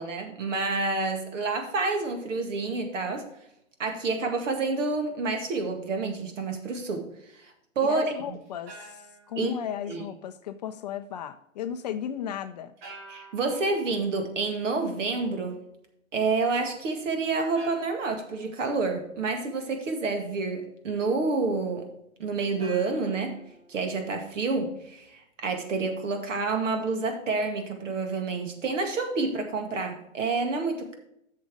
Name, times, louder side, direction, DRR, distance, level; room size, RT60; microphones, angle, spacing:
voice 1, 0.0-3.3 3.8-7.1 7.3-8.1 9.4-9.5 9.9-10.0 13.1-15.6 16.1-21.9 22.2-23.4 23.7-30.9, right 3 dB, 65° right, 5 dB, 2.1 m, -28 dB
sound 1, 4.9-5.2 8.3-10.3 12.8-14.1 16.7-16.8 17.5-19.2 22.5-24.5, right 2 dB, 45° right, 2.3 m, -49 dB
voice 2, 7.8-9.0 9.3-12.7, left 9 dB, 35° left, 9 dB, 0.4 m, -35 dB
7.9 x 6.4 x 4.8 m, 0.79 s
hypercardioid pair, 125°, 40 cm